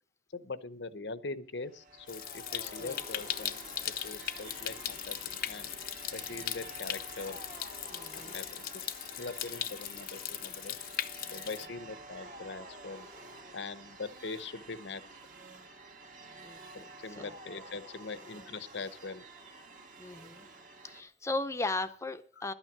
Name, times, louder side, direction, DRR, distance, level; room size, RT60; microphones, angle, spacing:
voice 1, 0.3-5.7 6.1-7.4 8.1-8.7 9.2-10.7 11.3-13.1 13.5-15.0 16.7-19.2 22.4-22.5, left 3 dB, 80° left, 14 dB, 0.9 m, -42 dB
sound 1, 1.6-21.0, right 2 dB, 50° right, 1.8 m, -49 dB
Stream, 2.1-11.7, left 11 dB, 55° left, 0.6 m, -39 dB
voice 2, 7.9-8.4 16.4-16.9 17.2-17.3 20.0-20.5 20.8-22.5, left 2 dB, 15° left, 10 dB, 0.7 m, -37 dB
11.5 x 9.0 x 6.0 m, 0.42 s
head